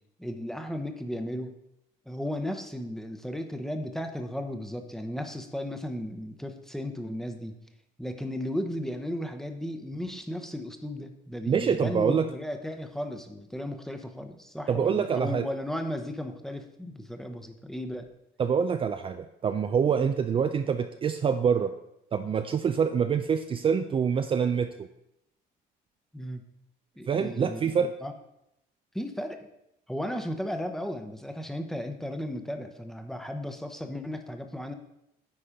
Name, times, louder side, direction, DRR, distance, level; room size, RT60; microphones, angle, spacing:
voice 1, 0.2-1.5 2.1-7.6 8.0-18.1 19.9-20.1 26.1-26.4 27.0-27.7 28.0-28.1 28.9-29.5 29.9-34.7, equal, ahead, 6 dB, 0.9 m, -35 dB
voice 2, 11.5-12.3 14.7-15.4 18.4-21.7 22.1-24.9 27.1-27.9, right 7 dB, 30° right, 8 dB, 0.4 m, -26 dB
9.6 x 4.3 x 5.0 m, 0.82 s
cardioid pair, 110°, 17 cm